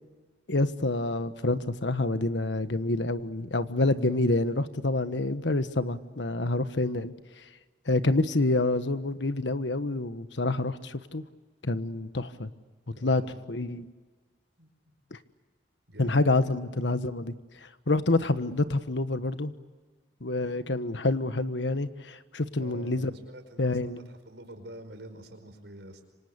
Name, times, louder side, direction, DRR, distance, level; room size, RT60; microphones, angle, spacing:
voice 1, 0.5-7.1 7.9-11.2 11.6-12.5 13.0-13.2 13.5-13.9 15.1-15.2 16.0-17.3 17.9-19.5 20.2-23.1 23.6-24.0, left 2 dB, 85° left, 11 dB, 1.4 m, -27 dB
voice 2, 12.9-13.3 14.6-14.9 15.9-16.2 22.6-26.1, right 1 dB, 80° right, 7 dB, 5.1 m, -47 dB
28.0 x 25.5 x 8.3 m, 1.4 s
head